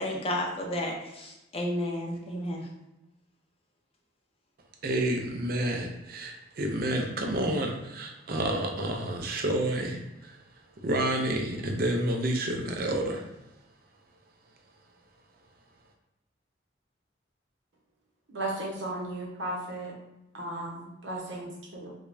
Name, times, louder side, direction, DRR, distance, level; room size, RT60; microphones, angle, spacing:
voice 1, 0.0-2.7, left 1 dB, 30° left, -1 dB, 0.6 m, -32 dB
voice 2, 4.8-10.4 10.8-13.3, right 1 dB, 55° right, 3 dB, 0.5 m, -29 dB
voice 3, 18.3-19.9 20.3-21.9, right 1 dB, 80° right, -3 dB, 1.0 m, -35 dB
4.9 x 2.2 x 2.6 m, 0.91 s
head